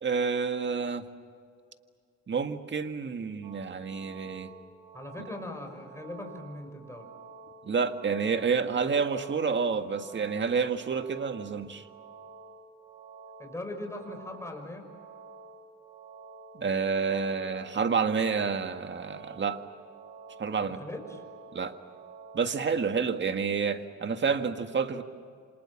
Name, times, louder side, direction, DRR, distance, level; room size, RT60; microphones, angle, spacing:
voice 1, 0.0-1.0 2.3-4.5 7.6-11.8 16.5-19.6 20.4-20.8 21.5-21.8 22.3-25.0, right 5 dB, 40° right, 7 dB, 1.8 m, -29 dB
sound 1, 3.4-22.6, right 4 dB, 90° right, 2.2 m, -50 dB
voice 2, 4.9-7.1 13.4-14.9 20.6-21.2, left 1 dB, 10° left, 4 dB, 5.9 m, -40 dB
29.0 x 26.5 x 7.3 m, 2.2 s
cardioid pair, 90°, 30 cm